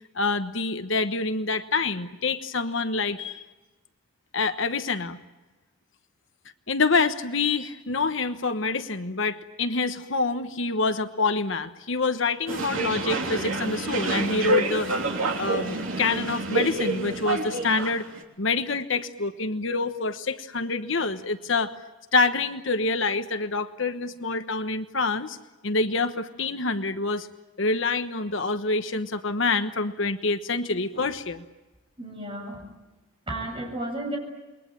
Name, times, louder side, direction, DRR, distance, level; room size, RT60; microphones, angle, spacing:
voice 1, 0.1-3.4 4.3-5.2 6.7-14.9 15.4-18.1 18.4-21.7 22.1-25.4 25.6-27.3 27.6-31.4, left 3 dB, 60° left, 9 dB, 1.2 m, -26 dB
sound 1, 12.5-18.2, right 2 dB, 70° right, 3.2 m, -28 dB
voice 2, 32.0-32.6 33.3-34.2, right 1 dB, 25° right, 1 dB, 7.7 m, -33 dB
28.5 x 22.0 x 9.0 m, 1.1 s
head